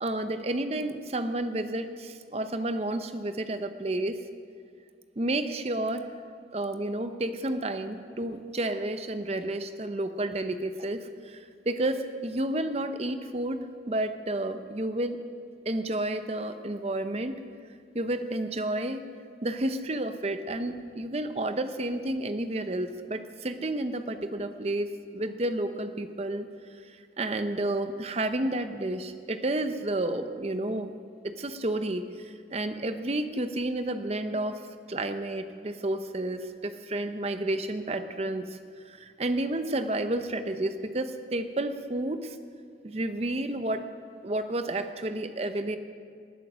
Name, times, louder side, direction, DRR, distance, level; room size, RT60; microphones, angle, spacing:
voice 1, 0.0-4.2 5.2-6.1 6.5-15.2 15.6-17.4 17.9-19.1 19.4-26.5 27.2-30.9 31.2-34.6 34.9-38.6 38.9-42.4 42.8-43.8 44.2-45.8, right 1 dB, 35° right, 9 dB, 0.7 m, -31 dB
19.0 x 9.2 x 6.2 m, 2.2 s
head